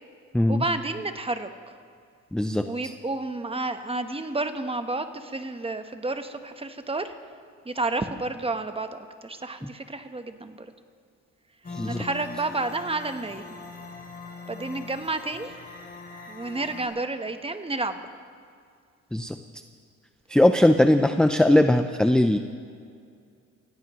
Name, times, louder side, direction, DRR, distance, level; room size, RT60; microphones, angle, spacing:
voice 1, 0.5-1.8 2.7-7.2 7.6-10.7 11.8-13.4 14.5-15.6 16.3-18.1, right 2 dB, 20° right, 8 dB, 1.1 m, -31 dB
voice 2, 2.3-2.9 11.7-12.0 19.1-19.6 20.3-22.4, left 1 dB, 5° left, 7 dB, 0.6 m, -20 dB
sound 1, 11.6-16.9, left 4 dB, 30° left, 2.9 m, -41 dB
27.0 x 16.5 x 3.1 m, 2.3 s
cardioid pair, 90°, 30 cm